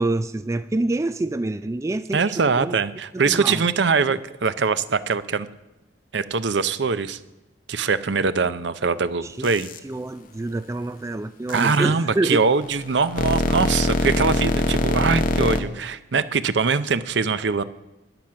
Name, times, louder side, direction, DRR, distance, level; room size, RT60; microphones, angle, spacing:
voice 1, 0.0-2.8 3.1-3.6 9.2-9.5 9.8-12.4, right 2 dB, 15° right, 12 dB, 0.3 m, -26 dB
voice 2, 2.1-5.5 6.1-7.2 7.7-9.7 11.5-17.6, right 5 dB, 70° right, 14 dB, 0.6 m, -22 dB
sound 1, 9.4-9.8 11.5-11.8 12.6-15.6, left 1 dB, 50° left, 1.0 m, -23 dB
13.5 x 10.5 x 5.8 m, 0.99 s
head